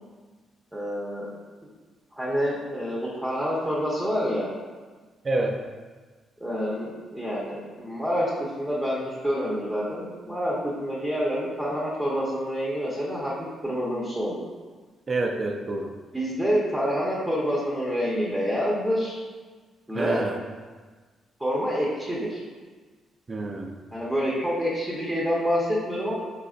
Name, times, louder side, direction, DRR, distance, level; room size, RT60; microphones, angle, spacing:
voice 1, 0.7-1.3 1.6-1.7 2.2-4.5 6.4-8.3 8.6-13.3 13.6-14.4 16.1-19.1 19.9-20.2 21.4-22.4 23.9-26.2, equal, 10° right, -6 dB, 0.9 m, -27 dB
voice 2, 5.2-5.6 15.1-15.9 19.9-20.4 23.3-23.8, right 2 dB, 35° right, 3 dB, 0.5 m, -27 dB
4.0 x 4.0 x 2.4 m, 1.4 s
cardioid pair, 90°, 0 cm